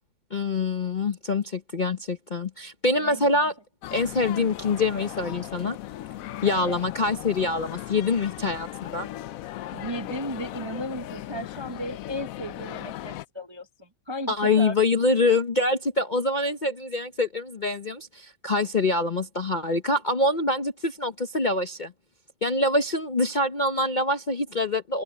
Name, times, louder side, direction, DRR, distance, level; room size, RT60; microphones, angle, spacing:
voice 1, 0.3-3.5 3.9-5.8 6.4-9.1 14.3-21.9 22.4-25.0, left 2 dB, 40° left, 0.7 m, -25 dB
voice 2, 3.0-3.4 6.5-6.8 9.7-14.7, equal, 25° right, 0.6 m, -35 dB
sound 1, 3.8-13.2, left 14 dB, 70° left, 0.8 m, -37 dB
omnidirectional pair, 1.9 m